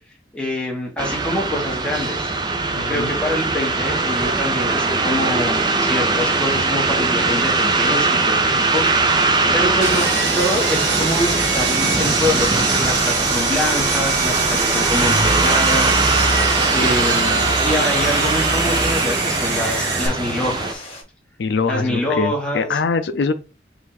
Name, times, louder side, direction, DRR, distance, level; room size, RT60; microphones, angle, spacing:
voice 1, 0.3-2.3 2.9-9.2 9.5-16.0 16.7-20.9 21.7-22.8, left 1 dB, 5° left, 1.2 m, -25 dB
sound 1, 1.0-20.7, right 3 dB, 25° right, 0.5 m, -20 dB
voice 2, 2.7-3.1 21.4-23.3, left 4 dB, 70° left, 0.4 m, -23 dB
Sawing, 9.8-20.1, right 4 dB, 80° right, 1.5 m, -23 dB
Stream, 10.3-21.0, left 2 dB, 35° left, 1.6 m, -38 dB
4.8 x 2.6 x 4.0 m
head